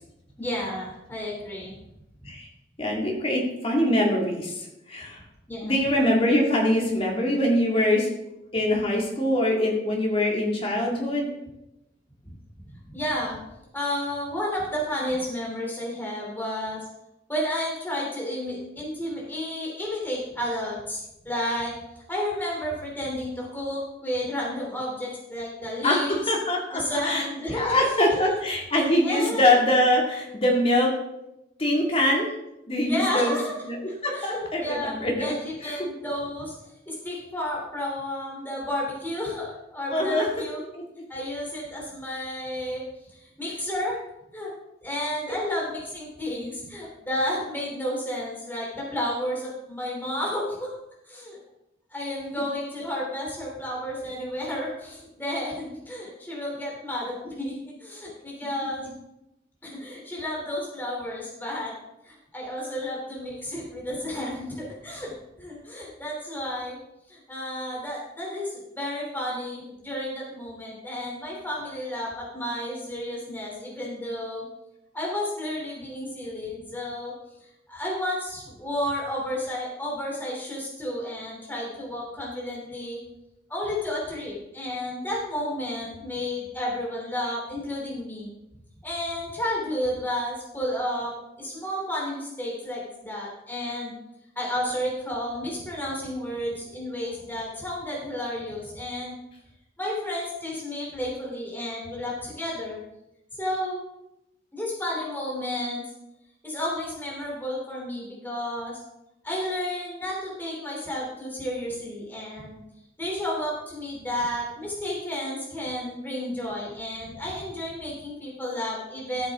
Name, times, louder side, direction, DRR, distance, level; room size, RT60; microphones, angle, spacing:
voice 1, 0.4-1.8 2.2-2.3 5.5-5.8 12.2-12.3 12.9-13.4 13.7-16.8 17.3-21.8 22.1-26.1 26.7-28.3 28.7-29.5 32.9-33.5 34.1-34.9 35.2-40.6 41.1-42.8 43.1-44.0 44.3-44.5 44.8-50.7 51.0-51.4 51.9-58.9 59.6-61.7 62.0-66.8 67.1-74.4 74.9-77.1 77.7-83.0 83.5-88.3 88.8-93.9 94.3-99.2 99.8-102.8 103.4-103.8 104.5-105.8 106.4-108.8 109.2-112.6 113.0-119.3, left 1 dB, 10° left, -4 dB, 2.9 m, -32 dB
voice 2, 2.8-5.2 5.6-8.1 8.5-11.3 25.8-30.9 31.6-32.3 32.7-33.3 33.6-33.8 34.0-35.4 35.6-35.9 39.9-40.3 40.7-40.8, left 1 dB, 30° left, -1 dB, 2.1 m, -23 dB
13.5 x 7.3 x 3.6 m, 0.89 s
head